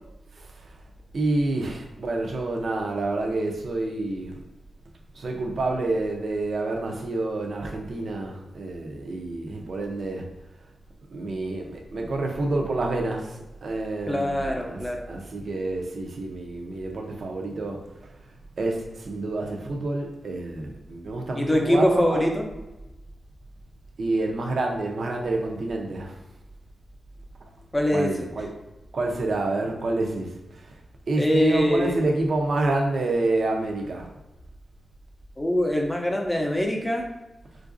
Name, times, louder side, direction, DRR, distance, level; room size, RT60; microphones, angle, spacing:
voice 1, 0.3-0.8 1.1-4.4 5.1-10.3 11.1-14.8 15.1-22.2 24.0-26.2 27.9-28.5 28.9-30.8 31.1-34.1, right 2 dB, 65° right, 1 dB, 0.6 m, -28 dB
voice 2, 14.1-15.0 21.3-22.4 27.7-28.3 31.2-32.1 35.4-37.1, left 1 dB, 10° left, 1 dB, 0.5 m, -23 dB
3.8 x 2.5 x 2.5 m, 1.0 s
wide cardioid pair, 120°, 0 cm